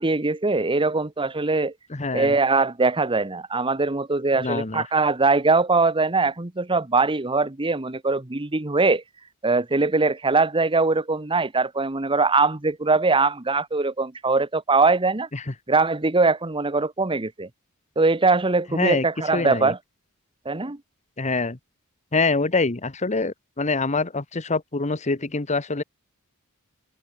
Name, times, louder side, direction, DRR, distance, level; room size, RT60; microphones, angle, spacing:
voice 1, 0.0-1.7 2.1-9.0 9.4-15.3 15.7-17.5 18.0-19.8 20.4-20.8, right 3 dB, 25° right, 1.2 m, -22 dB
voice 2, 1.9-2.4 4.4-4.8 15.3-15.5 18.7-19.0 19.3-19.7 21.2-21.6 22.1-25.8, left 3 dB, 30° left, 1.2 m, -25 dB
head